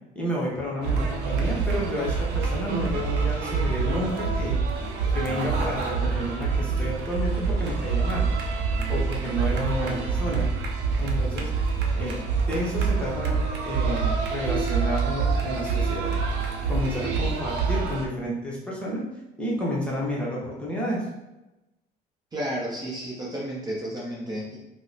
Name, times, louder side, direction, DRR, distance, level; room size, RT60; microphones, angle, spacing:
voice 1, 0.1-4.6 5.1-8.3 8.9-10.5 11.0-11.5 12.0-13.4 13.6-16.1 16.7-19.0 19.4-21.1, equal, 5° left, -5 dB, 0.9 m, -30 dB
sound 1, 0.8-18.1, right 5 dB, 85° right, 0.6 m, -26 dB
voice 2, 22.3-24.6, equal, 25° right, -4 dB, 0.7 m, -32 dB
2.8 x 2.1 x 3.8 m, 0.99 s
cardioid pair, 110°, 17 cm